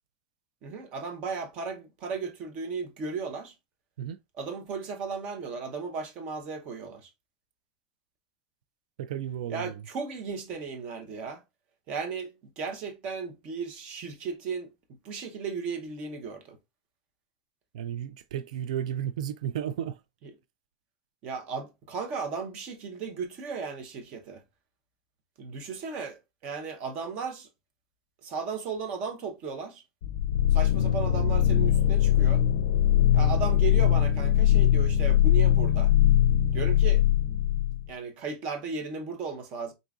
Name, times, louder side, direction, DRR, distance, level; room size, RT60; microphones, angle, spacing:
voice 1, 0.6-3.5 4.4-7.1 9.5-11.4 11.9-14.7 15.0-16.6 20.2-20.3 21.2-24.4 25.4-27.5 28.2-29.8 30.5-32.4 33.1-35.9 36.5-37.0 37.9-39.7, right 5 dB, 30° right, 0.8 m, -35 dB
voice 2, 9.0-9.8 17.7-20.0 33.2-33.4, right 10 dB, 85° right, 0.3 m, -33 dB
sound 1, 30.0-37.9, left 11 dB, 75° left, 0.4 m, -22 dB
3.7 x 3.7 x 2.4 m
supercardioid pair, 180°, 4 cm